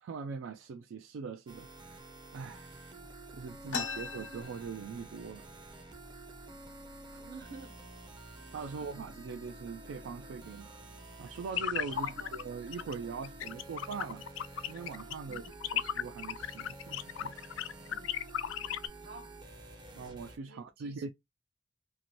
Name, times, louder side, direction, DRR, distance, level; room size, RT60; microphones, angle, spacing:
voice 1, 0.0-2.0 2.3-2.7 3.3-5.5 7.1-7.2 8.5-10.7 11.2-14.3 14.7-15.4 15.7-17.5 20.0-21.1, right 5 dB, 75° right, 0.3 m, -42 dB
sound 1, 1.5-20.4, right 2 dB, 25° right, 0.5 m, -50 dB
voice 2, 3.6-4.0 7.2-7.7 8.7-8.8 11.9-12.4 15.2-15.5 17.8-18.1 18.6-19.3 20.4-21.0, right 3 dB, 55° right, 1.1 m, -51 dB
sound 2, 3.7-5.3 5.7-5.8 6.0-6.6 7.2-7.4 8.1-8.3 8.7-9.2, left 6 dB, 70° left, 0.7 m, -39 dB
sound 3, 11.5-12.4 12.7-12.9 13.2-18.9, left 10 dB, 90° left, 0.3 m, -35 dB
2.7 x 2.5 x 2.9 m
head